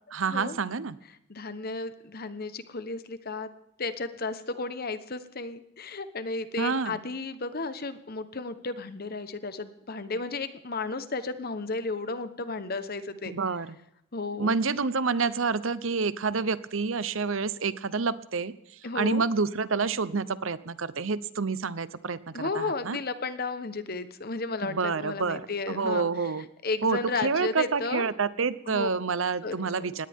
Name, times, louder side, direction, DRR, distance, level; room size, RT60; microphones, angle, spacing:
voice 1, 0.1-1.0 6.6-7.0 13.2-13.8 14.4-23.0 24.6-25.4 25.7-26.5 26.8-30.1, right 4 dB, 75° right, 16 dB, 0.8 m, -28 dB
voice 2, 1.3-3.5 3.8-13.3 14.1-14.5 18.8-19.2 22.3-26.1 26.6-28.1 28.7-28.9 29.4-29.9, left 3 dB, 50° left, 12 dB, 1.2 m, -33 dB
20.0 x 17.0 x 3.7 m, 0.77 s
head